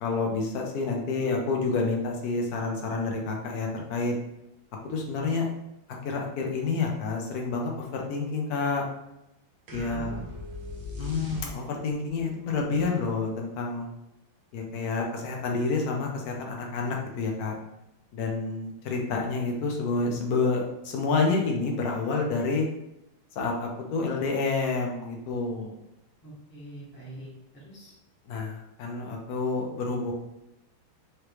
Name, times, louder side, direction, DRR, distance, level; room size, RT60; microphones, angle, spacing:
voice 1, 0.0-4.1 4.8-5.5 6.0-8.8 9.7-10.1 11.0-13.9 14.5-17.5 18.1-22.7 23.4-25.8 28.3-30.1, left 4 dB, 60° left, 1 dB, 1.1 m, -29 dB
voice 2, 9.7-10.2 26.2-27.9, right 1 dB, 5° left, -8 dB, 1.2 m, -44 dB
sound 1, 9.7-11.9, left 2 dB, 60° right, 1.1 m, -39 dB
5.0 x 3.1 x 3.0 m, 0.87 s
omnidirectional pair, 2.3 m